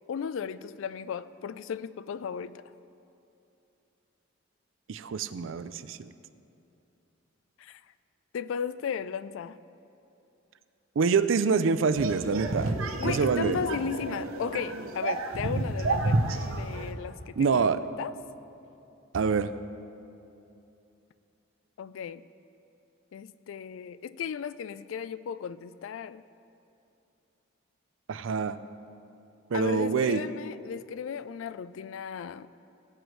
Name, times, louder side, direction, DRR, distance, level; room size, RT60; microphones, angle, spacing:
voice 1, 0.1-2.6 7.6-7.8 8.3-9.6 12.6-18.1 21.8-22.2 23.1-26.2 29.5-32.5, left 7 dB, 70° left, 16 dB, 0.3 m, -35 dB
voice 2, 4.9-6.1 11.0-12.7 13.0-13.6 17.4-17.8 19.1-19.5 28.1-28.6 29.5-30.2, right 5 dB, 70° right, 13 dB, 0.4 m, -26 dB
sound 1, 12.0-16.9, right 2 dB, 90° right, 0.7 m, -30 dB
19.0 x 7.8 x 3.2 m, 2.8 s
head